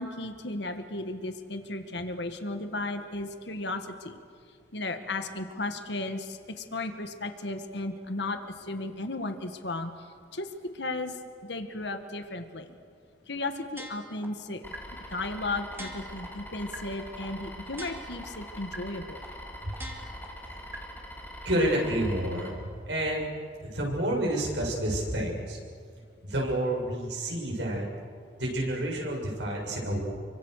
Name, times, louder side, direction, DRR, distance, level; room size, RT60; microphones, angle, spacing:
voice 1, 0.0-4.2 4.7-9.9 10.3-11.2 11.4-12.8 13.3-14.6 15.1-19.3, left 2 dB, 65° left, 7 dB, 1.8 m, -35 dB
sound 1, 13.8-14.2 14.7-14.8 15.2-15.3 15.7-16.2 16.7-16.8 17.2-17.3 17.7-18.2 18.7-18.8 19.2-19.3 19.7-20.2 20.7-20.8, right 1 dB, 10° right, 2.8 m, -42 dB
sound 2, 14.6-22.5, equal, 10° left, 4.5 m, -43 dB
voice 2, 21.4-22.5 22.9-23.2 23.6-25.6 26.2-27.9 28.4-30.1, right 1 dB, 70° right, -1 dB, 6.9 m, -29 dB
29.0 x 24.5 x 6.7 m, 2.1 s
head